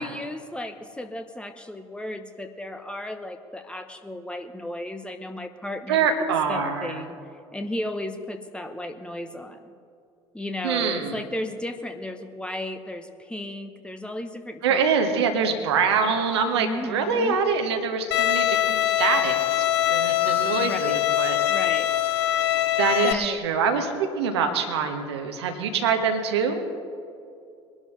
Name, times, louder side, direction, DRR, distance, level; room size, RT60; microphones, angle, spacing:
voice 1, 0.0-6.1 6.5-7.2 7.5-9.7 10.3-14.8 16.5-17.4 20.6-21.0 21.5-21.9 23.0-23.4, left 1 dB, 5° left, 7 dB, 1.0 m, -34 dB
voice 2, 5.9-7.0 10.6-11.2 14.6-21.4 22.8-26.6, right 5 dB, 70° right, 5 dB, 1.5 m, -25 dB
Bowed string instrument, 18.1-23.1, left 12 dB, 65° left, 0.7 m, -23 dB
22.5 x 11.5 x 3.3 m, 2.5 s
figure-of-eight pair, 60°, 14 cm